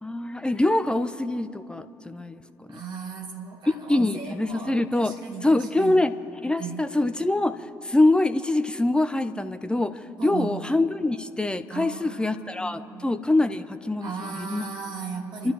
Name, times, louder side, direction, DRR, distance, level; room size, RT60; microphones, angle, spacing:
voice 1, 0.0-2.4 2.7-2.8 3.9-5.1 5.4-6.1 6.4-7.6 7.8-14.7 15.4-15.5, left 2 dB, 10° left, 10 dB, 0.9 m, -24 dB
voice 2, 2.7-6.0 6.6-7.0 10.2-10.7 11.7-13.1 14.0-15.5, right 5 dB, 50° right, 0 dB, 2.5 m, -37 dB
29.0 x 13.0 x 3.1 m, 2.9 s
figure-of-eight pair, 45°, 10 cm